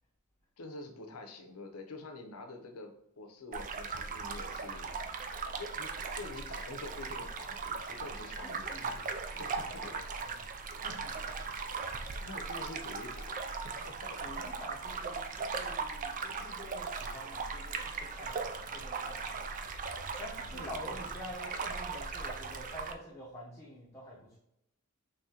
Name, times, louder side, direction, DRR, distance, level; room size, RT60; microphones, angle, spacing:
voice 1, 0.6-9.0 9.3-10.0 12.2-14.3 20.5-21.0, left 2 dB, 75° left, 5 dB, 0.7 m, -47 dB
sound 1, 3.5-22.9, right 4 dB, 35° right, 0.4 m, -38 dB
voice 2, 8.4-10.4 10.7-11.5 14.2-24.4, equal, 15° left, -7 dB, 0.8 m, -48 dB
3.7 x 3.6 x 2.8 m, 0.78 s
head